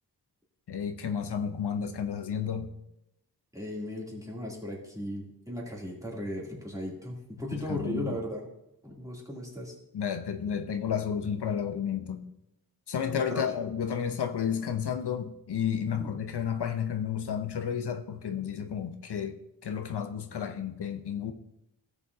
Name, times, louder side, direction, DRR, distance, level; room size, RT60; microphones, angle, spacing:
voice 1, 0.7-2.7 7.5-8.2 9.9-12.3 12.9-19.4 19.6-21.3, left 8 dB, 85° left, 7 dB, 0.8 m, -32 dB
voice 2, 3.5-8.4 8.8-9.7 13.1-13.5 15.8-16.1, equal, 10° right, -3 dB, 2.7 m, -37 dB
16.5 x 7.1 x 2.7 m, 0.84 s
wide cardioid pair, 105°, 39 cm